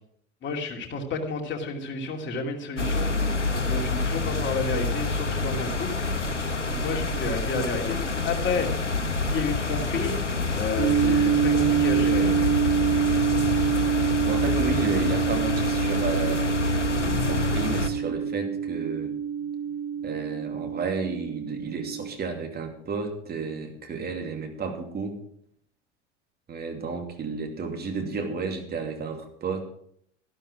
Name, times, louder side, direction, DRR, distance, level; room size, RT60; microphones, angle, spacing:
voice 1, 0.4-3.3 3.5-6.3 6.6-8.7 9.3-10.2 10.6-12.4, left 4 dB, 30° left, 2 dB, 2.7 m, -31 dB
sound 1, 2.8-17.9, left 3 dB, 90° left, 1.0 m, -27 dB
sound 2, 10.8-22.1, right 8 dB, 50° right, 3.1 m, -26 dB
voice 2, 14.2-16.5 17.0-19.1 20.0-25.2 26.5-29.6, right 4 dB, 25° right, 4 dB, 2.7 m, -32 dB
13.0 x 12.0 x 4.9 m, 0.66 s
figure-of-eight pair, 75°, 35 cm